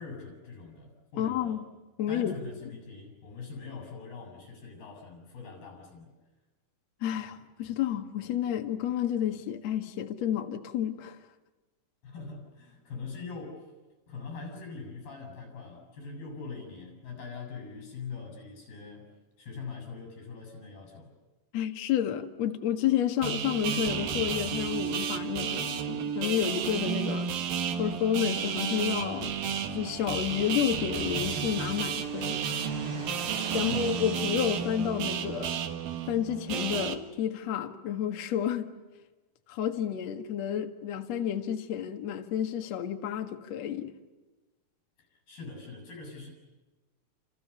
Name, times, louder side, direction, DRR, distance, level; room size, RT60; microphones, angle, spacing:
voice 1, 0.0-1.6 2.1-6.1 12.0-13.7 14.1-21.1 33.5-33.9 45.0-46.3, left 4 dB, 70° left, 9.2 m, -43 dB
voice 2, 1.2-1.6 2.0-2.4 7.0-11.2 21.5-27.3 27.8-29.4 29.7-32.4 33.5-35.6 36.1-38.7 39.5-43.9, left 10 dB, 55° left, 2.4 m, -30 dB
sound 1, 23.2-36.9, right 7 dB, 70° right, 3.3 m, -32 dB
Fixed-wing aircraft airplane, 27.7-37.0, right 1 dB, 30° right, 7.2 m, -48 dB
29.5 x 29.0 x 6.8 m
omnidirectional pair, 4.4 m